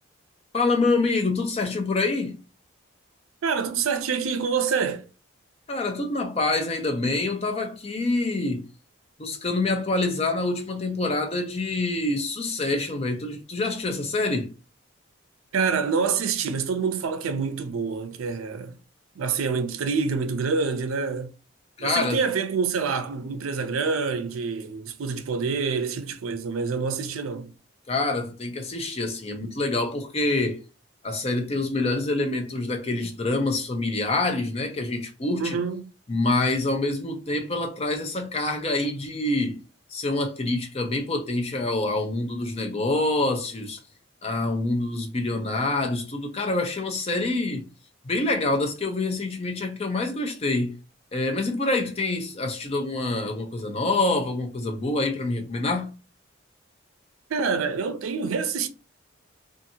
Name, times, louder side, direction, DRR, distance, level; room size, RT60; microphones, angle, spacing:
voice 1, 0.5-2.4 5.7-8.7 9.2-14.5 21.8-22.2 27.9-30.6 31.0-35.6 36.1-39.6 39.9-43.8 44.2-47.6 48.0-50.8 51.1-55.9, left 2 dB, 30° left, 0.5 m, -26 dB
voice 2, 3.4-5.1 15.5-18.8 19.2-21.3 21.8-27.5 35.4-35.9 57.3-58.7, right 5 dB, 85° right, 0.5 m, -26 dB
2.7 x 2.5 x 2.7 m
head